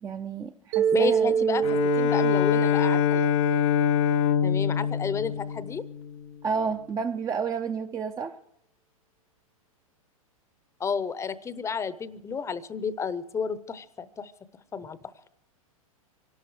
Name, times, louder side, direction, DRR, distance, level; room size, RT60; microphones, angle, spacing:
voice 1, 0.0-1.6 6.4-8.3, right 5 dB, 20° right, 8 dB, 0.6 m, -31 dB
Mallet percussion, 0.7-4.9, right 7 dB, 55° right, 1.4 m, -27 dB
voice 2, 0.9-1.6 2.0-3.3 4.4-5.8 10.8-14.3 14.7-15.0, left 6 dB, 15° left, 16 dB, 0.8 m, -31 dB
Bowed string instrument, 1.6-6.3, left 9 dB, 55° left, 0.8 m, -24 dB
25.0 x 12.0 x 4.8 m, 0.74 s
hypercardioid pair, 120°, 18 cm